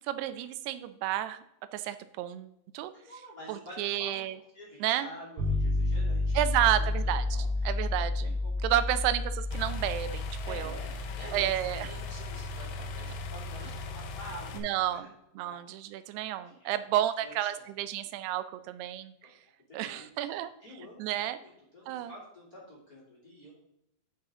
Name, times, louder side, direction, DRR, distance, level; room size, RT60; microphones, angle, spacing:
voice 1, 0.0-1.4 1.7-2.9 3.5-4.3 4.8-5.1 6.3-7.3 7.7-10.7 11.3-11.9 14.6-15.1 15.4-19.1 19.7-20.5 21.0-21.4 21.9-22.1, right 12 dB, 90° right, 12 dB, 2.7 m, -31 dB
voice 2, 2.9-4.3 4.5-6.4 6.7-7.7 8.2-8.7 10.4-15.1 15.4-15.6 16.4-16.8 17.2-17.6 19.2-19.3 19.7-20.3 20.6-23.6, equal, 25° left, -5 dB, 2.6 m, -48 dB
sound 1, 5.4-14.3, left 2 dB, 65° right, 3.8 m, -32 dB
sound 2, 9.5-14.6, left 3 dB, 70° left, 2.3 m, -40 dB
10.5 x 5.7 x 3.8 m, 0.78 s
omnidirectional pair, 4.6 m